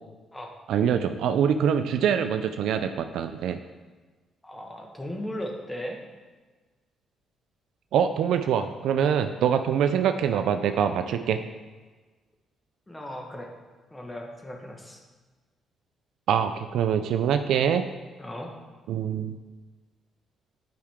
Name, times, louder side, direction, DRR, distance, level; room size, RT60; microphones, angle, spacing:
voice 1, 0.7-3.6 7.9-11.4 16.3-17.8 18.9-19.4, right 8 dB, 80° right, 8 dB, 0.3 m, -24 dB
voice 2, 4.4-6.0 9.8-9.9 12.9-13.5 13.9-15.0 18.2-18.5, equal, 15° left, 2 dB, 1.2 m, -37 dB
10.5 x 4.8 x 3.5 m, 1.3 s
cardioid pair, 90°, 0 cm